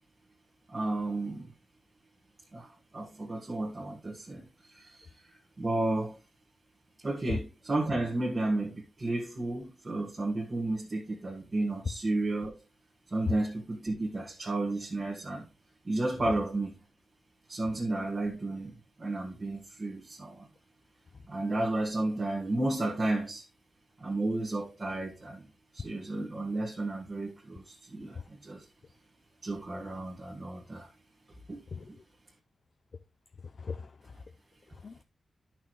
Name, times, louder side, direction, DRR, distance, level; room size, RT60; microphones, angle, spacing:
voice 1, 0.7-1.5 2.5-6.2 7.0-12.6 13.1-15.5 15.8-16.8 17.5-20.5 21.3-23.4 24.0-25.5 25.7-28.7 29.4-30.9 31.5-31.6, right 2 dB, 30° right, 1.5 m, -33 dB
voice 2, 33.4-34.2 34.7-35.0, left 5 dB, 45° left, 0.4 m, -37 dB
11.0 x 6.0 x 3.1 m
wide cardioid pair, 155°, 0 cm